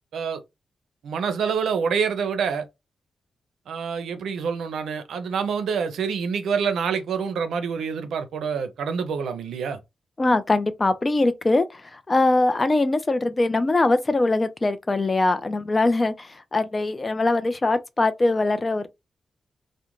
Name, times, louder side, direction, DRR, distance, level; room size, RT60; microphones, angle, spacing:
voice 1, 1.0-2.6 3.7-9.8, right 6 dB, 90° right, 0.5 m, -26 dB
voice 2, 10.2-18.9, left 2 dB, 30° left, 0.4 m, -22 dB
2.4 x 2.1 x 2.9 m
cardioid pair, 90°, 0 cm